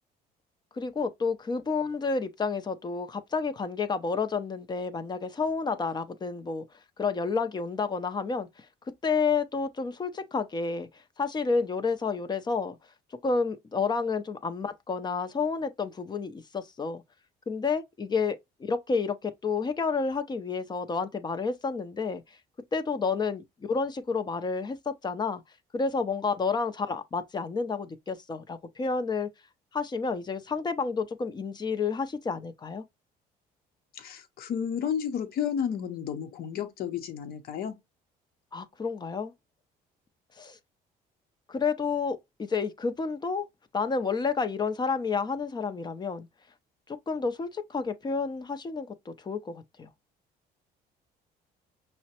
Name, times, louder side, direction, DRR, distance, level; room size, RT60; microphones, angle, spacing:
voice 1, 0.8-6.6 7.0-8.7 9.0-10.9 11.2-12.8 13.2-17.0 17.5-22.2 22.7-25.4 25.7-29.3 29.7-32.8 38.5-39.3 40.4-40.6 41.5-43.5 43.7-46.3 46.9-49.9, left 4 dB, 25° left, 0.6 m, -30 dB
voice 2, 33.9-37.8, left 8 dB, 65° left, 0.8 m, -32 dB
5.5 x 2.1 x 2.8 m
cardioid pair, 110°, 17 cm